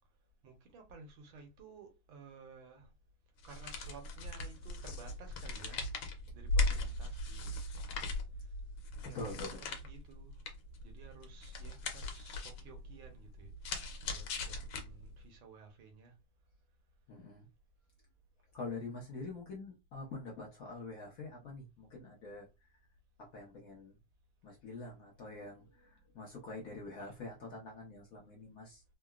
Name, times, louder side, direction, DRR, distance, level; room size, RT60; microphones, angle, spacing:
voice 1, 0.4-2.9 3.4-5.8 6.3-7.6 9.1-10.4 10.8-13.5 13.8-16.1 26.9-27.1, right 4 dB, 80° right, 1.6 m, -55 dB
sound 1, 3.4-15.3, left 2 dB, 85° left, 1.5 m, -39 dB
voice 2, 9.1-9.6 17.1-17.5 18.5-22.5 23.2-24.0 24.4-28.8, left 3 dB, 60° left, 0.9 m, -45 dB
3.7 x 2.0 x 2.3 m
omnidirectional pair, 2.2 m